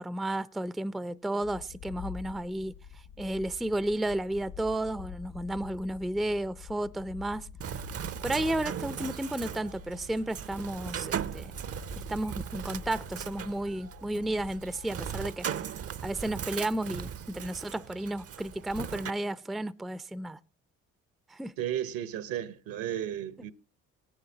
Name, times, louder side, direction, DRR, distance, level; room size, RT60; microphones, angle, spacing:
voice 1, 0.0-2.7 3.2-7.8 8.2-11.5 12.0-15.5 16.0-20.4 21.3-21.5, right 1 dB, ahead, 0.5 m, -33 dB
sound 1, 1.4-15.3, left 8 dB, 80° left, 1.2 m, -48 dB
Bird, 7.6-19.1, right 8 dB, 40° right, 0.6 m, -38 dB
voice 2, 21.6-23.5, right 11 dB, 65° right, 1.0 m, -34 dB
18.5 x 9.9 x 2.8 m
hypercardioid pair, 50°, 39 cm